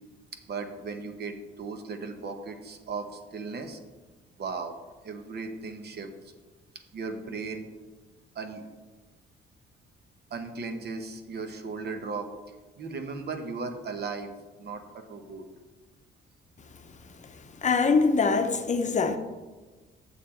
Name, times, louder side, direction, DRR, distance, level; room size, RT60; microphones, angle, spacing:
voice 1, 0.5-3.8 4.4-4.7 5.0-6.3 6.9-7.7 8.3-8.7 10.3-12.3 12.8-14.3 14.6-15.5, right 4 dB, 55° right, 1.0 m, -36 dB
voice 2, 17.6-19.2, left 4 dB, 35° left, 0.7 m, -23 dB
7.2 x 6.6 x 4.4 m
cardioid pair, 90°, 20 cm